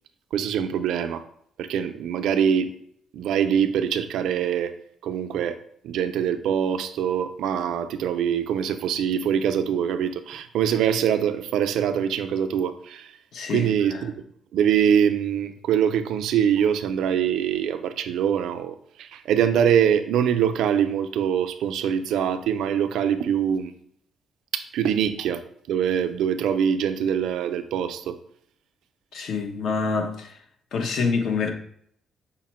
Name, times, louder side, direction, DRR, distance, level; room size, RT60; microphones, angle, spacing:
voice 1, 0.3-1.2 1.6-2.7 3.1-4.7 5.0-5.6 5.8-13.1 13.5-14.1 14.5-23.7 24.5-25.4 25.7-28.2, right 8 dB, 80° right, 0.4 m, -23 dB
voice 2, 13.3-14.0 29.1-30.3 30.7-31.5, left 5 dB, 70° left, 0.8 m, -26 dB
5.7 x 2.0 x 4.2 m
cardioid pair, 90°, 0 cm